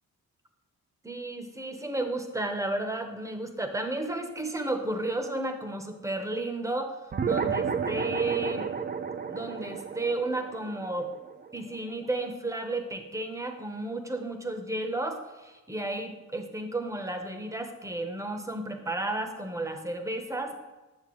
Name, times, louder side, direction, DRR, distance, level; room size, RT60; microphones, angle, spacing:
voice 1, 1.0-7.0 7.2-8.7 9.3-11.1 11.5-20.6, right 2 dB, 10° right, 6 dB, 0.7 m, -33 dB
sound 1, 7.1-11.9, right 6 dB, 30° right, 0.4 m, -32 dB
8.5 x 6.6 x 3.0 m, 1.1 s
wide cardioid pair, 120°, 30 cm